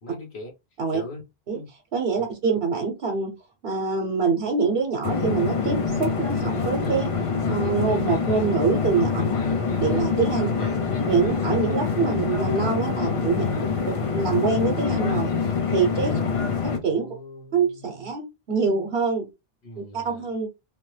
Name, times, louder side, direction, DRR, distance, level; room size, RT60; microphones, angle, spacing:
voice 1, 0.0-0.5 0.9-1.2 1.5-1.7 2.1-2.3 9.2-9.5 10.4-10.8 16.1-16.3 16.7-18.1 18.5-18.9 19.6-20.3, left 1 dB, 85° left, 1.5 m, -42 dB
voice 2, 1.9-3.3 3.6-7.1 7.5-9.2 9.8-10.5 11.1-13.4 14.1-15.3 15.7-16.1 16.6-17.1 17.5-19.2 19.8-20.5, right 5 dB, 70° right, 1.0 m, -24 dB
sound 1, 5.0-16.8, left 5 dB, 40° left, 0.5 m, -25 dB
3.2 x 2.0 x 3.2 m
omnidirectional pair, 1.0 m